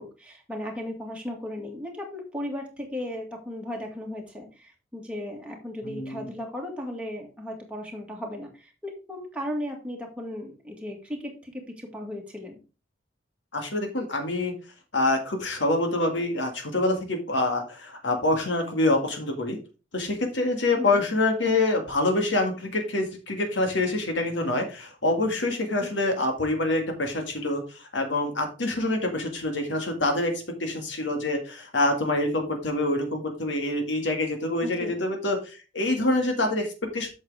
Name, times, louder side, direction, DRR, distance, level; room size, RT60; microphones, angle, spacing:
voice 1, 0.0-12.6 20.8-21.0 34.6-35.0, left 1 dB, 5° right, -1 dB, 1.9 m, -36 dB
voice 2, 5.8-6.3 13.5-14.5 14.9-19.6 19.9-37.1, left 2 dB, 80° left, 4 dB, 1.9 m, -26 dB
8.3 x 6.5 x 3.4 m, 0.32 s
head